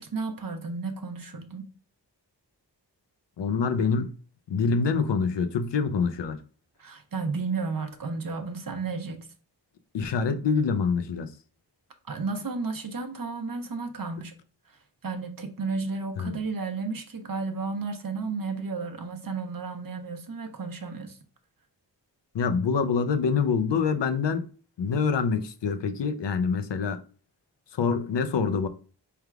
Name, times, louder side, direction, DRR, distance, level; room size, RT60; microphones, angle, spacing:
voice 1, 0.0-1.6 6.8-9.3 12.1-14.3 15.0-21.2, right 4 dB, 55° right, 0.8 m, -33 dB
voice 2, 3.4-4.1 4.5-6.4 9.9-11.3 16.2-16.4 22.3-24.5 24.8-27.0 27.7-28.7, left 5 dB, 80° left, 0.6 m, -25 dB
4.5 x 3.4 x 2.3 m
cardioid pair, 50°, 42 cm